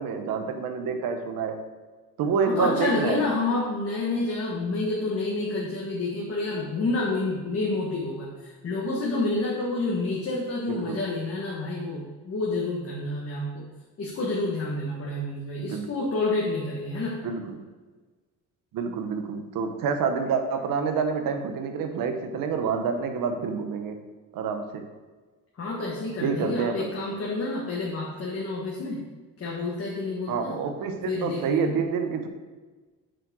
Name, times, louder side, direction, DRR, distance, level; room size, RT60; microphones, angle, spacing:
voice 1, 0.0-1.6 2.2-3.2 10.7-11.0 15.6-15.9 17.2-17.7 18.7-24.0 24.3-24.9 26.2-26.9 30.3-32.3, right 5 dB, 85° right, 7 dB, 0.9 m, -28 dB
voice 2, 2.5-13.6 14.0-17.2 25.6-29.0 29.4-30.6 31.1-31.7, left 2 dB, 45° left, -3 dB, 1.4 m, -29 dB
6.4 x 4.7 x 6.1 m, 1.3 s
cardioid pair, 105°, 33 cm